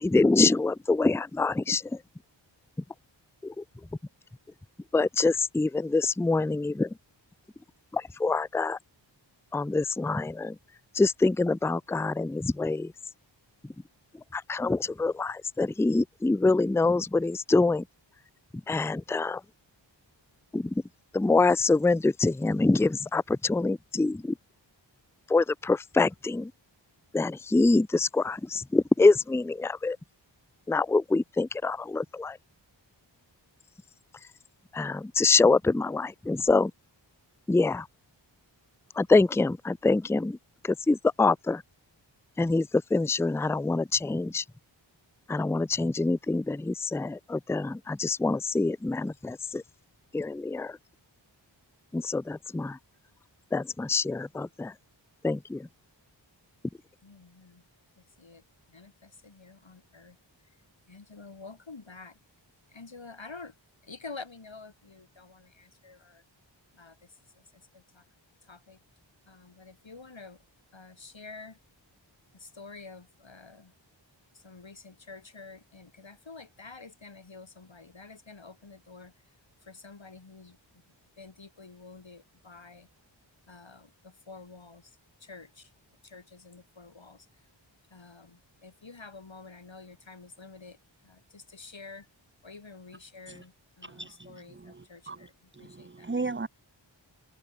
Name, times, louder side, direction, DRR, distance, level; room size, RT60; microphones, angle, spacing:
voice 1, 0.0-1.8 3.4-3.5 4.9-6.9 7.9-8.8 9.5-10.5 11.0-12.9 14.3-17.8 18.7-19.4 20.5-20.6 21.1-24.3 25.3-26.5 27.1-30.0 30.7-32.4 34.7-36.7 37.5-37.8 39.0-40.4 40.9-41.6 42.4-44.4 45.3-49.6 50.1-50.7 51.9-52.8 53.5-54.7 55.2-55.6, left 3 dB, 5° left, 0.4 m, -25 dB
voice 2, 57.0-57.6 58.0-58.4 58.7-60.2 60.9-62.2 62.7-63.5 63.8-66.2 66.8-67.1 67.3-68.0 68.4-68.8 69.3-70.4 70.7-71.6 72.3-73.7 74.3-79.1 79.6-80.8 81.2-82.9 83.5-85.7 86.0-87.3 87.9-90.8 91.0-92.1 92.4-96.1, left 4 dB, 75° left, 4.5 m, -48 dB
voice 3, 93.8-96.5, right 3 dB, 25° right, 0.9 m, -37 dB
open air
wide cardioid pair, 45°, 46 cm